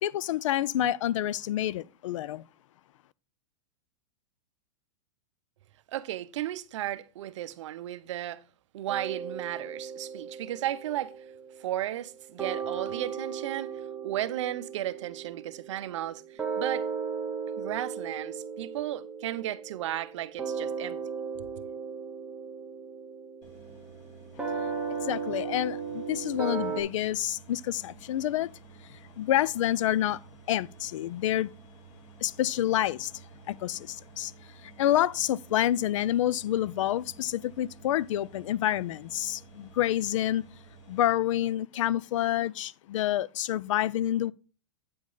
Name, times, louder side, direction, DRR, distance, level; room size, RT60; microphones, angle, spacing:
voice 1, 0.0-2.4 25.0-28.5 28.9-30.2 30.5-31.5 32.2-33.1 33.5-34.3 34.6-40.4 40.9-44.3, left 12 dB, 75° left, 0.4 m, -28 dB
voice 2, 5.9-8.4 8.7-11.3 11.6-16.9 17.6-21.0 21.4-21.5, right 13 dB, 70° right, 0.6 m, -34 dB
sound 1, 8.9-12.1 12.4-26.8, right 6 dB, 5° right, 0.9 m, -36 dB
sound 2, 23.4-41.1, right 4 dB, 35° left, 2.3 m, -52 dB
8.6 x 5.1 x 3.8 m
supercardioid pair, 160°, 16 cm